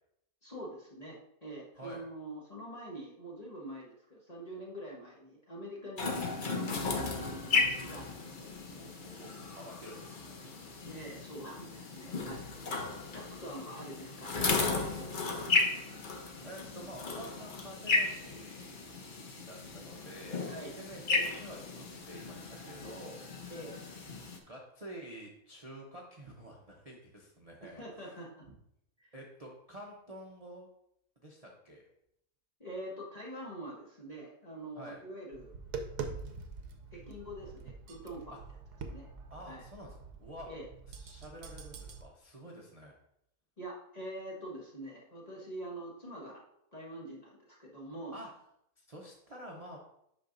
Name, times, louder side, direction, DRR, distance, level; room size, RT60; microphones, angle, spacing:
voice 1, 0.4-8.1 10.8-15.5 20.4-20.8 23.5-23.8 27.6-28.5 29.0-29.1 32.6-35.5 36.9-38.4 38.9-39.1 39.4-39.6 40.5-40.7 43.6-46.4 46.7-48.2, right 1 dB, 30° left, -3 dB, 1.1 m, -45 dB
sound 1, 6.0-24.4, left 3 dB, 45° left, 0.7 m, -35 dB
voice 2, 8.7-10.4 16.3-18.8 19.5-20.5 20.8-23.2 24.5-28.2 29.1-30.7 31.2-31.8 34.8-35.0 38.3-38.4 39.3-40.5 40.9-43.0 48.1-48.3 48.8-49.8, equal, 30° right, -2 dB, 0.7 m, -49 dB
Tap, 35.3-42.0, right 5 dB, 90° right, 1.3 m, -44 dB
8.4 x 5.6 x 2.6 m, 0.76 s
omnidirectional pair, 1.7 m